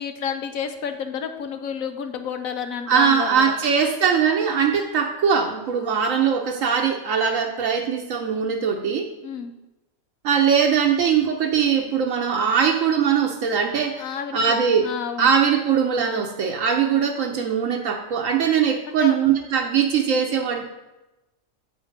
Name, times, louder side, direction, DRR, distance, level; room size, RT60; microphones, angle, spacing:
voice 1, 0.0-3.6 9.2-9.5 14.0-15.3 18.9-19.2, left 7 dB, 80° left, 7 dB, 1.1 m, -30 dB
voice 2, 2.9-9.1 10.2-14.9 15.2-20.6, right 7 dB, 70° right, 3 dB, 1.1 m, -21 dB
7.8 x 5.1 x 5.1 m, 1.0 s
omnidirectional pair, 1.4 m